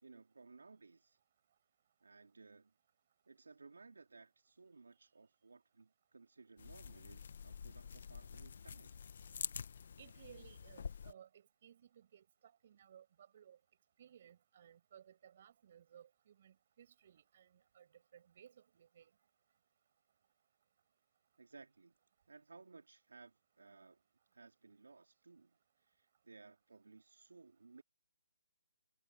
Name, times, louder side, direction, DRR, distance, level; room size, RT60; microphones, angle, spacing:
voice 1, 0.0-1.2 2.0-2.7 3.3-8.9 21.4-21.9 22.3-24.0 24.3-27.8, right 4 dB, 85° right, 3.5 m, -60 dB
sound 1, 6.6-11.1, left 6 dB, 50° left, 1.3 m, -48 dB
voice 2, 10.0-13.6 14.0-19.1, right 9 dB, 35° right, 7.7 m, -61 dB
hypercardioid pair, 165°, 0 cm